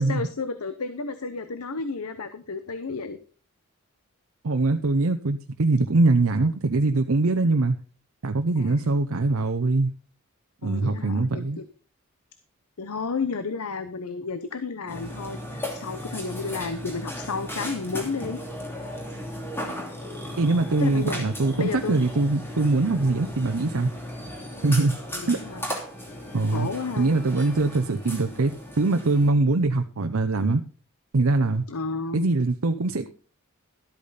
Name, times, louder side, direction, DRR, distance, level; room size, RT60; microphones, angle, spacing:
voice 1, 0.0-3.2 8.6-8.9 10.6-11.4 12.8-18.4 20.8-21.2 21.6-22.0 25.1-25.6 26.5-27.1 31.7-32.3, left 4 dB, 90° left, 11 dB, 0.9 m, -32 dB
voice 2, 4.4-7.8 8.2-9.9 10.6-11.6 20.4-23.9 24.6-25.0 25.3-25.4 26.3-30.6 31.1-31.6 32.1-33.1, right 3 dB, 70° right, 7 dB, 0.7 m, -23 dB
Burping eructation, 14.9-29.3, equal, 10° left, 2.7 m, -36 dB
13.0 x 8.5 x 4.1 m, 0.40 s
head